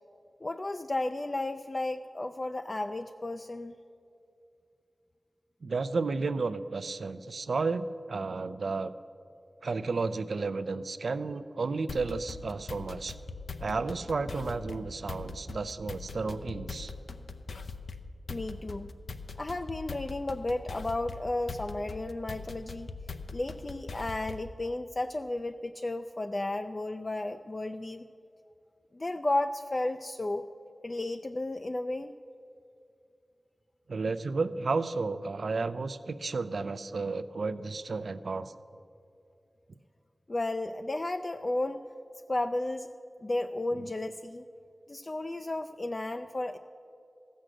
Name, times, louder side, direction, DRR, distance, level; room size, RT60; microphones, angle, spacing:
voice 1, 0.4-3.7 18.3-18.9 19.4-22.9 23.3-28.1 28.9-30.5 30.8-32.1 40.3-41.8 42.3-42.9 43.2-44.5 44.9-46.6, left 2 dB, 35° left, 7 dB, 0.3 m, -33 dB
voice 2, 5.6-8.9 9.6-13.1 13.6-16.9 33.9-38.5, right 4 dB, 80° right, 13 dB, 0.4 m, -32 dB
sound 1, 11.9-24.6, left 3 dB, 85° left, 0.5 m, -42 dB
14.5 x 6.3 x 7.6 m, 2.6 s
wide cardioid pair, 75°, 0 cm